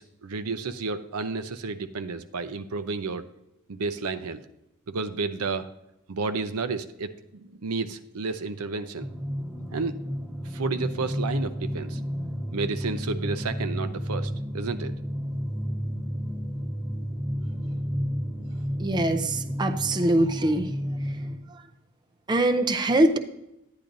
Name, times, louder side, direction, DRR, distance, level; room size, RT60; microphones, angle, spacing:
voice 1, 0.0-3.3 3.7-4.4 4.9-5.7 6.1-9.1 9.7-10.0 10.4-12.0 12.5-14.9, right 4 dB, 75° right, 11 dB, 0.6 m, -31 dB
sound 1, 9.0-21.4, equal, 5° right, 1.2 m, -31 dB
voice 2, 18.8-20.7 22.3-23.2, right 1 dB, 20° right, 6 dB, 0.5 m, -23 dB
10.5 x 10.0 x 2.6 m, 0.89 s
head